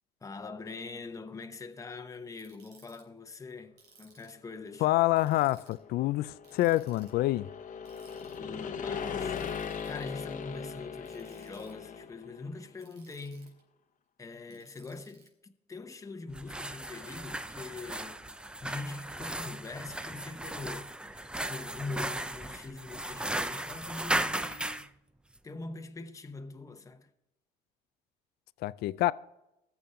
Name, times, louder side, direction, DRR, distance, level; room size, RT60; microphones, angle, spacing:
voice 1, 0.2-4.9 8.4-13.6 14.2-24.9 25.4-27.1, left 3 dB, 20° left, 0.8 m, -43 dB
Ratchet pawl, 2.4-3.0 3.8-4.4 5.2-5.8 6.4-7.1 7.9-8.4 9.4-10.0 11.0-11.7 12.8-13.6 14.5-15.3, right 5 dB, 85° right, 4.1 m, -60 dB
voice 2, 4.8-7.5 28.6-29.1, left 16 dB, 70° left, 0.4 m, -27 dB
sound 1, 5.6-12.5, left 7 dB, 50° left, 1.0 m, -39 dB
sound 2, 16.3-24.9, right 1 dB, 5° right, 0.4 m, -36 dB
20.0 x 7.1 x 3.7 m
cardioid pair, 110°, 17 cm